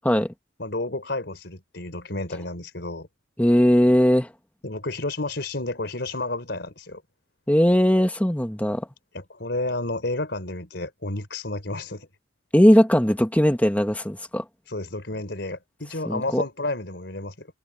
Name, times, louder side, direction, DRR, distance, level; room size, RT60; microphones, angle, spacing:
voice 1, 0.6-3.1 4.6-7.0 9.1-12.1 14.7-17.5, left 2 dB, 70° left, 4.3 m, -31 dB
voice 2, 3.4-4.3 7.5-8.9 12.5-14.4 16.1-16.4, equal, 10° left, 1.8 m, -19 dB
head